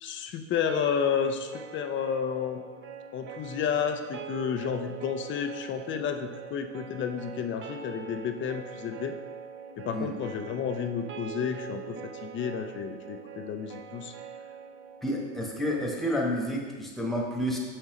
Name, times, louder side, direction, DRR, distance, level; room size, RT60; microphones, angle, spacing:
voice 1, 0.0-2.6 3.1-9.2 9.8-14.1, left 7 dB, 30° left, 7 dB, 0.5 m, -31 dB
sound 1, 0.7-16.7, right 7 dB, 35° right, 0.6 m, -43 dB
voice 2, 15.0-17.6, equal, ahead, -2 dB, 1.2 m, -30 dB
6.3 x 5.6 x 3.0 m, 1.4 s
hypercardioid pair, 100°, 38 cm